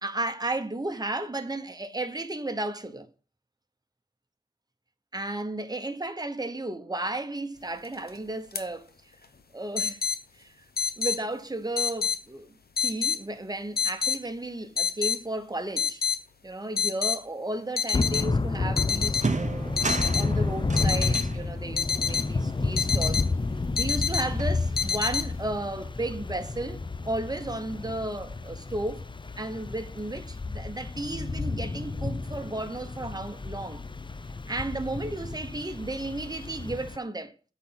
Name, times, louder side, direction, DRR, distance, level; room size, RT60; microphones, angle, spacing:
voice 1, 0.0-3.1 5.1-8.9 9.5-10.0 10.4-10.6 11.0-12.5 12.8-16.0 16.4-23.3 23.7-29.1 29.4-33.8 34.5-37.3, right 2 dB, 25° right, 1.0 m, -34 dB
sound 1, 7.8-8.1 8.5-8.6 9.8-10.2 10.8-11.2 11.8-12.2 12.8-13.2 13.8-14.2 14.8-15.2 15.8-16.2 16.8-17.2 17.8-18.3 18.8-19.3 19.8-20.3 20.8-21.3 21.8-22.3 22.8-23.3 23.8-24.3 24.8-25.3, left 7 dB, 80° left, 0.8 m, -27 dB
Thunder / Rain, 17.9-37.0, left 3 dB, 30° left, 0.4 m, -31 dB
sound 2, 18.5-18.7 19.1-23.7 24.0-25.0, right 3 dB, 50° right, 0.8 m, -35 dB
8.4 x 4.1 x 5.7 m
wide cardioid pair, 45°, 16 cm